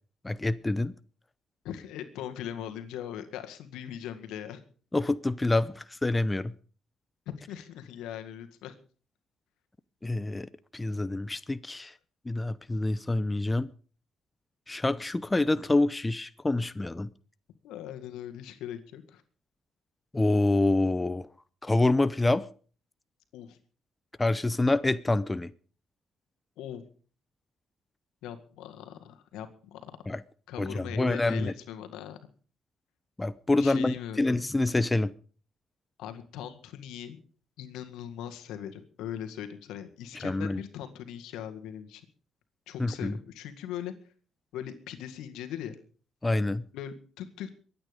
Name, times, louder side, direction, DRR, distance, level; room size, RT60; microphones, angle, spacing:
voice 1, 0.2-0.9 4.9-6.5 10.0-11.9 12.3-13.7 14.7-17.1 20.1-21.3 21.6-22.4 24.2-25.5 30.1-30.2 30.6-31.5 33.2-35.1 40.2-40.6 42.8-43.2 46.2-46.6, left 2 dB, 15° left, 15 dB, 0.7 m, -27 dB
voice 2, 1.6-4.6 7.3-8.7 17.6-19.2 23.3-23.6 26.6-26.8 28.2-29.9 30.5-32.2 33.6-34.3 36.0-37.2 37.6-42.0 42.7-43.9 44.5-45.8 46.7-47.5, left 10 dB, 90° left, 7 dB, 1.9 m, -40 dB
23.0 x 9.1 x 5.2 m, 0.41 s
cardioid pair, 85°, 0 cm